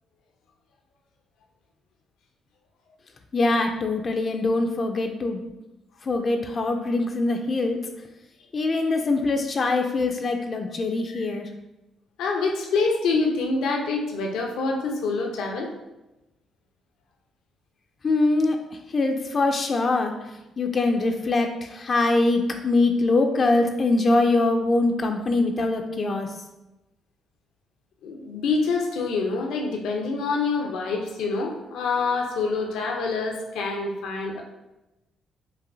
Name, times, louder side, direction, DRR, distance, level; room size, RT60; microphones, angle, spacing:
voice 1, 3.3-5.4 6.0-7.8 8.5-11.5 18.0-20.2 20.6-26.3, left 2 dB, 40° left, 4 dB, 0.4 m, -23 dB
voice 2, 12.2-15.7 28.0-34.4, left 4 dB, 85° left, 1 dB, 0.7 m, -26 dB
5.5 x 2.7 x 2.6 m, 0.99 s
cardioid pair, 90°, 0 cm